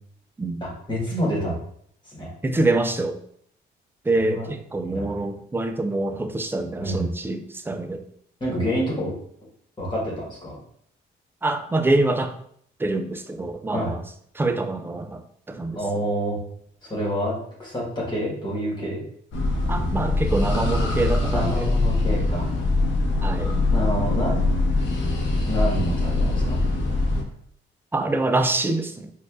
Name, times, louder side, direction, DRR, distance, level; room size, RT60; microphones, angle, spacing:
voice 1, 0.6-1.6 2.1-2.3 4.2-4.5 4.9-5.2 6.8-7.1 8.4-9.1 9.8-10.6 13.7-13.9 15.7-16.4 16.8-19.0 21.3-22.5 23.7-24.5 25.4-26.6, equal, 25° left, -5 dB, 1.4 m, -27 dB
voice 2, 2.4-3.2 4.1-8.0 11.4-12.4 12.8-14.0 14.3-15.8 19.7-21.7 23.2-23.6 27.9-29.1, right 2 dB, 10° right, 7 dB, 0.3 m, -25 dB
sound 1, 19.3-27.2, left 2 dB, 70° left, 0.7 m, -23 dB
4.1 x 2.4 x 2.4 m, 0.66 s
cardioid pair, 90°, 20 cm